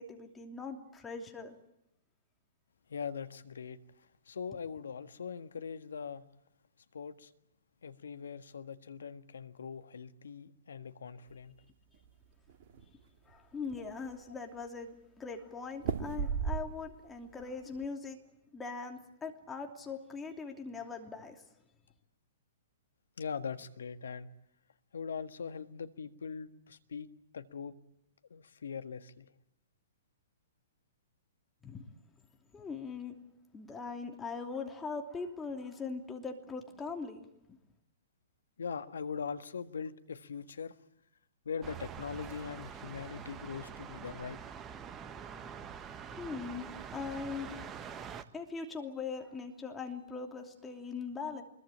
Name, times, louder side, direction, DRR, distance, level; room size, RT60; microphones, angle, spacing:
voice 1, 0.0-1.5 13.3-18.2 18.5-21.4 31.6-31.8 32.5-33.1 33.5-37.3 46.1-46.7 46.9-47.7 48.3-51.4, left 5 dB, 15° left, 2.9 m, -41 dB
voice 2, 2.9-6.3 6.9-7.3 7.8-11.6 13.8-13.9 23.2-24.3 24.9-27.1 27.3-27.8 28.3-29.3 38.6-40.7 41.4-44.4, left 6 dB, 70° left, 1.6 m, -41 dB
sound 1, 11.9-12.8 13.3-13.4 13.7-14.3 15.8-17.0 17.4-17.9, right 6 dB, 50° right, 2.7 m, -35 dB
sound 2, 41.6-48.2, right 7 dB, 25° right, 1.4 m, -45 dB
24.0 x 22.0 x 8.9 m
figure-of-eight pair, 115°, 0 cm